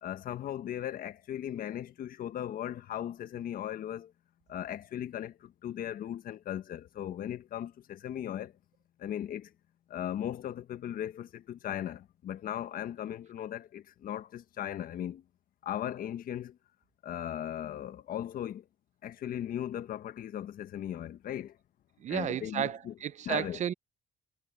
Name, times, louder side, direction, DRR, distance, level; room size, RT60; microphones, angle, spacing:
voice 1, 0.0-4.1 4.5-8.5 9.0-9.5 9.9-15.2 15.6-16.6 17.0-18.6 19.0-21.6 22.1-22.9 23.2-23.6, left 11 dB, 60° left, 1.4 m, -37 dB
voice 2, 22.0-23.7, right 10 dB, 45° right, 0.5 m, -33 dB
cardioid pair, 110°, 17 cm